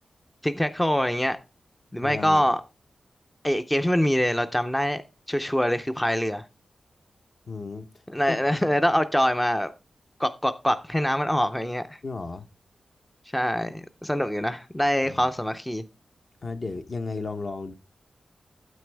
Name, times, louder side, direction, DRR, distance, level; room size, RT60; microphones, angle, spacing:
voice 1, 0.4-1.4 1.9-2.6 3.4-5.0 5.3-6.4 8.1-9.7 10.2-12.0 13.3-15.8, equal, 5° left, 0.5 m, -24 dB
voice 2, 2.0-2.4 7.5-7.9 8.3-8.6 12.0-12.5 15.1-15.3 16.4-17.7, left 3 dB, 45° left, 0.8 m, -34 dB
9.3 x 8.6 x 3.3 m
wide cardioid pair, 160°, 0 cm